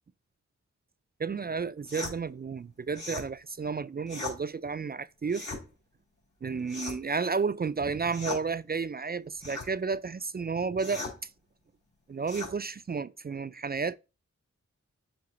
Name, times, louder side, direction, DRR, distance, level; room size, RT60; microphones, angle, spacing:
voice 1, 1.2-5.5 6.4-11.0 12.1-13.9, right 5 dB, 30° right, 0.4 m, -32 dB
sound 1, 1.9-2.2 2.9-3.3 4.1-4.4 5.3-5.6 6.7-7.1 8.1-8.4 9.4-9.7 10.8-11.2 12.3-12.5, left 3 dB, 85° left, 3.8 m, -38 dB
7.7 x 3.5 x 4.1 m
cardioid pair, 50°, 30 cm